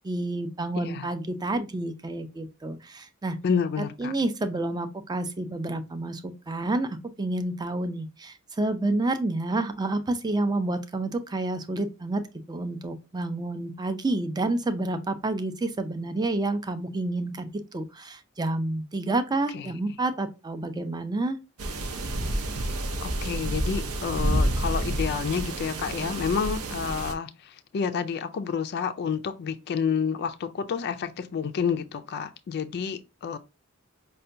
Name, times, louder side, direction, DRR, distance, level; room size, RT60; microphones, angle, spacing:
voice 1, 0.0-3.4 3.8-12.2 12.5-21.4, right 2 dB, 20° right, 0.4 m, -29 dB
voice 2, 0.8-1.1 3.4-4.1 19.5-19.7 23.0-33.4, left 6 dB, 50° left, 0.3 m, -29 dB
sound 1, 21.6-27.1, right 1 dB, 75° right, 0.6 m, -29 dB
5.4 x 2.2 x 2.5 m
head